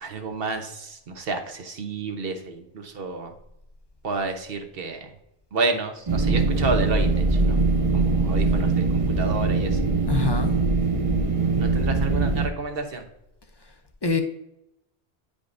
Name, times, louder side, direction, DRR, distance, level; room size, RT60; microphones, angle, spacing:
voice 1, 0.0-3.3 4.0-5.1 5.5-7.6 7.9-8.8 9.2-9.8 11.6-13.0, right 3 dB, 55° right, 5 dB, 1.2 m, -30 dB
sound 1, 6.1-12.5, right 3 dB, 35° right, 0.7 m, -22 dB
voice 2, 10.1-10.5 14.0-14.2, left 4 dB, 30° left, 5 dB, 0.5 m, -24 dB
9.7 x 5.1 x 2.6 m, 0.84 s
omnidirectional pair, 1.2 m